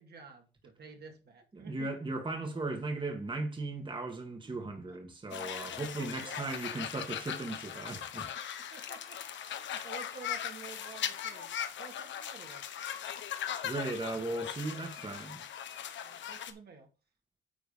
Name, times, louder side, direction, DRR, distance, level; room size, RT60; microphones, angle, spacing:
voice 1, 0.0-1.9 4.4-4.5 4.9-5.0 6.2-6.6 8.7-9.2 9.5-11.5 11.8-12.6 13.2-13.3 16.0-16.9, right 5 dB, 55° right, 2.3 m, -50 dB
voice 2, 1.5-8.3 13.6-15.4, right 2 dB, 25° right, 1.7 m, -37 dB
sound 1, 5.3-16.5, left 9 dB, 70° left, 1.1 m, -39 dB
10.5 x 3.9 x 5.1 m
cardioid pair, 90°, 20 cm